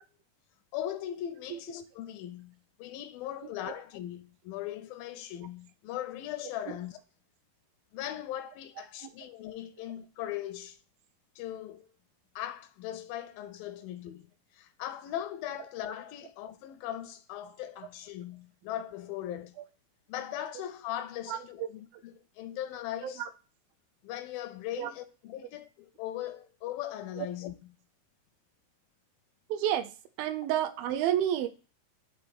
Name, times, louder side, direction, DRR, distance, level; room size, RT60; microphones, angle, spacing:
voice 1, 0.7-7.0 7.9-10.8 11.4-11.9 12.4-14.3 14.5-19.6 20.1-23.2 24.0-27.5, left 12 dB, 80° left, 2.2 m, -39 dB
voice 2, 21.3-21.7 21.9-22.0 23.0-23.3 24.8-24.9 27.2-27.3 29.5-29.9 30.2-31.5, right 11 dB, 80° right, 2.3 m, -30 dB
6.9 x 3.0 x 5.1 m
omnidirectional pair, 4.3 m